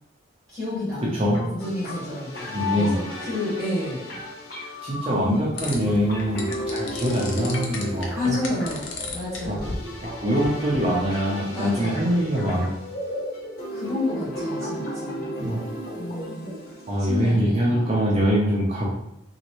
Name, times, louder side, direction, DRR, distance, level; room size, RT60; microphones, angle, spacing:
voice 1, 0.5-4.1 8.1-9.8 11.5-12.2 13.7-15.3 16.0-16.5 17.1-17.9, left 2 dB, ahead, -10 dB, 1.4 m, -30 dB
sound 1, 1.3-17.3, left 1 dB, 50° left, 0.9 m, -34 dB
voice 2, 2.5-3.0 4.8-8.4 9.5-9.6 10.0-12.7 15.4-15.6 16.9-18.9, equal, 30° right, -5 dB, 0.5 m, -23 dB
sound 2, 5.6-11.2, left 3 dB, 80° left, 0.6 m, -36 dB
3.0 x 2.8 x 3.0 m, 0.80 s
head